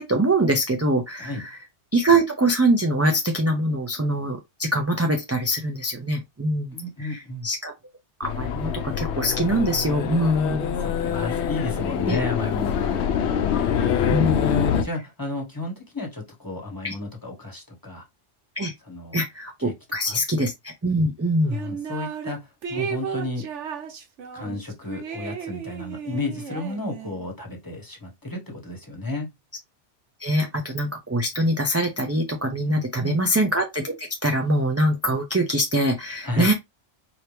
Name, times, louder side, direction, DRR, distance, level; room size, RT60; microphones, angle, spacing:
voice 1, 0.0-1.6 1.9-7.7 8.2-10.8 12.1-12.2 12.9-13.0 14.1-14.8 16.8-16.9 18.6-18.7 19.1-21.6 30.2-36.5, right 1 dB, 20° right, 0.4 m, -24 dB
voice 2, 6.7-7.5 10.8-13.5 14.3-18.0 18.9-19.2 19.6-19.7 20.1-20.2 21.4-23.5 24.3-29.3 32.7-33.2 36.2-36.5, left 2 dB, 20° left, 1.4 m, -32 dB
sound 1, 8.2-14.8, left 8 dB, 70° left, 0.9 m, -25 dB
sound 2, 21.5-22.3 22.6-27.3, right 7 dB, 80° right, 1.2 m, -34 dB
4.4 x 2.8 x 3.3 m
omnidirectional pair, 1.2 m